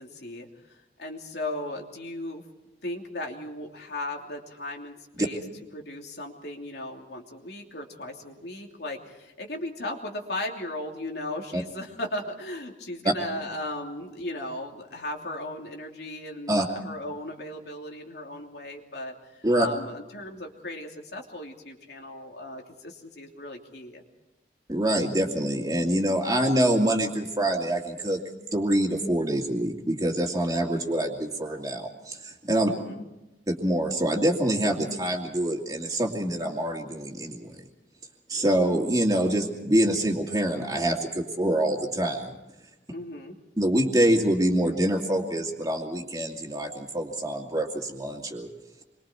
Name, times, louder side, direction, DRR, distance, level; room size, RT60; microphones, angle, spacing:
voice 1, 0.0-2.4 2.8-5.4 5.7-24.0 32.7-33.0 42.9-43.4, left 1 dB, 75° left, 1 dB, 3.0 m, -37 dB
voice 2, 24.7-28.2 28.5-32.7 33.5-37.5 38.3-42.3 43.6-48.5, right 1 dB, 20° right, 1 dB, 2.6 m, -25 dB
27.5 x 23.5 x 4.5 m, 0.99 s
head